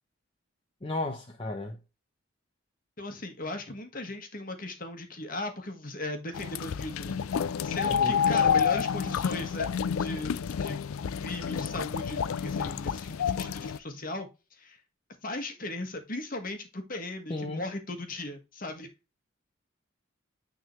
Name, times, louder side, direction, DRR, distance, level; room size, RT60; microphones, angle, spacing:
voice 1, 0.8-1.8 7.8-8.2 17.3-17.6, left 2 dB, 25° left, 0.8 m, -34 dB
voice 2, 3.0-7.2 7.6-9.7 10.0-10.3 10.6-10.8 11.2-14.3 14.6-14.8 15.2-18.9, left 2 dB, 40° left, 1.4 m, -37 dB
sound 1, 6.3-13.8, left 7 dB, 90° left, 0.4 m, -29 dB
9.2 x 3.8 x 3.1 m
head